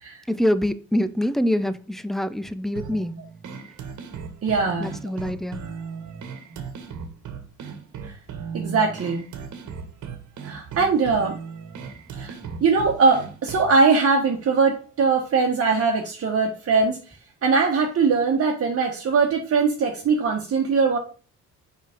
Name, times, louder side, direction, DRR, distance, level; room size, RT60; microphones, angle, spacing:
voice 1, 0.3-3.1 4.8-5.6, left 1 dB, ahead, 13 dB, 0.6 m, -25 dB
sound 1, 2.8-13.8, right 6 dB, 75° right, 1.4 m, -37 dB
voice 2, 4.4-5.0 8.0-8.1 8.5-9.3 10.4-11.4 12.2-12.3 12.6-17.0 17.4-21.0, right 4 dB, 50° right, 0 dB, 1.3 m, -21 dB
5.3 x 5.1 x 3.5 m, 0.36 s
cardioid pair, 90°, 30 cm